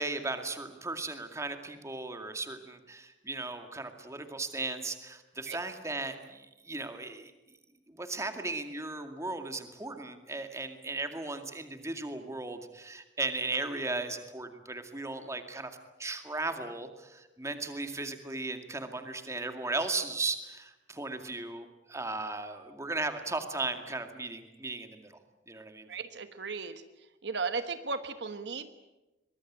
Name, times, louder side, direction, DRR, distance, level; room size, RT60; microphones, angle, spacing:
voice 1, 0.0-7.3 7.9-15.7 16.0-25.2 25.5-25.9, right 3 dB, 15° right, 7 dB, 2.2 m, -36 dB
voice 2, 25.9-26.8 27.2-28.7, right 4 dB, 65° right, 10 dB, 1.3 m, -35 dB
23.5 x 21.5 x 8.8 m, 1.0 s
head